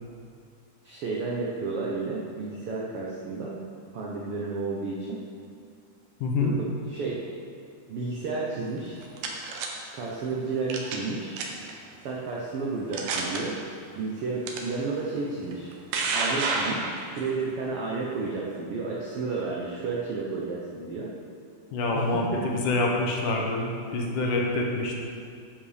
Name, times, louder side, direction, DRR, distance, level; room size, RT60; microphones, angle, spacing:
voice 1, 0.8-3.6 3.9-5.2 6.4-7.3 7.9-9.0 9.9-11.4 12.0-13.6 13.9-15.7 16.1-21.1 21.9-22.5, right 3 dB, 90° right, -4 dB, 1.2 m, -32 dB
voice 2, 6.2-6.5 21.7-25.0, left 2 dB, 70° left, 0 dB, 2.3 m, -26 dB
sound 1, 8.8-9.7 10.7-11.1 11.4-11.7 12.4-12.5 12.9-13.4 14.5-14.6 15.5-17.3, right 4 dB, 70° right, 2.4 m, -29 dB
9.9 x 7.6 x 5.0 m, 2.3 s
omnidirectional pair, 4.0 m